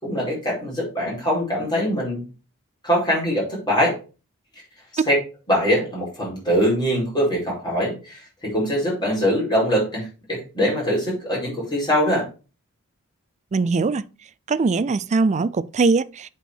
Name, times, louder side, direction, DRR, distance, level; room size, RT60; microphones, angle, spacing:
voice 1, 0.0-2.2 2.8-4.0 4.9-5.1 5.5-12.3, equal, 20° left, 4.6 m, -23 dB
voice 2, 13.5-14.0 14.5-16.3, right 4 dB, 30° right, 0.3 m, -21 dB
8.0 x 4.6 x 4.7 m
head